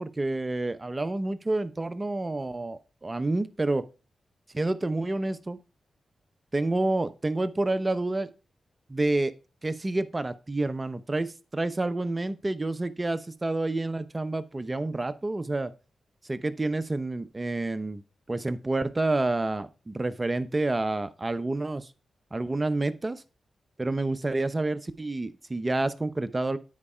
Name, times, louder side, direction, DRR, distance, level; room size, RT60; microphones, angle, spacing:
voice 1, 0.0-3.8 4.5-5.6 6.5-8.3 8.9-9.3 9.6-15.7 16.3-18.0 18.3-21.9 22.3-23.2 23.8-26.6, right 2 dB, 30° right, 13 dB, 0.8 m, -29 dB
9.7 x 4.8 x 4.4 m, 0.33 s
cardioid pair, 50°, 0 cm